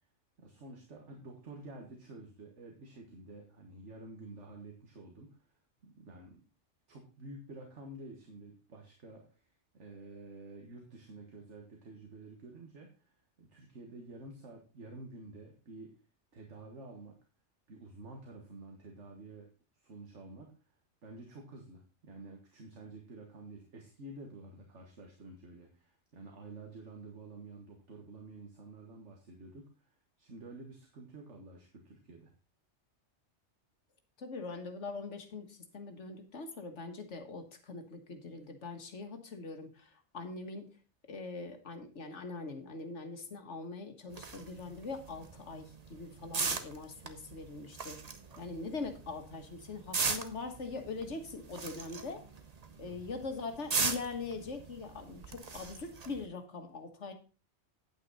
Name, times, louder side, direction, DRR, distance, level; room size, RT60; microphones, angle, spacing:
voice 1, 0.4-5.5 5.8-6.5 6.9-16.0 16.3-17.2 17.7-19.5 19.7-20.5 21.0-32.3 52.9-53.0, right 2 dB, 75° right, 1 dB, 1.9 m, -50 dB
voice 2, 34.2-40.8 41.1-48.0 48.4-52.2 52.8-57.1, left 3 dB, 75° left, 6 dB, 1.8 m, -42 dB
sound 1, 44.1-56.3, right 4 dB, 35° right, 0.9 m, -39 dB
9.0 x 8.8 x 4.1 m, 0.34 s
omnidirectional pair, 1.2 m